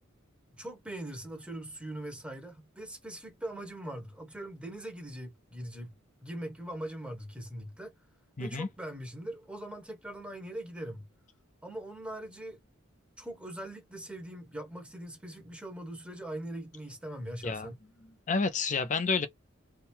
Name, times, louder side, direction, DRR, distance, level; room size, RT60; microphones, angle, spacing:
voice 1, 0.5-5.9 6.2-7.9 8.4-11.0 11.6-12.6 13.2-17.8, right 1 dB, 5° right, 1.1 m, -41 dB
voice 2, 8.4-8.7 17.4-17.7 18.3-19.3, left 4 dB, 35° left, 0.6 m, -29 dB
3.5 x 2.2 x 4.4 m
head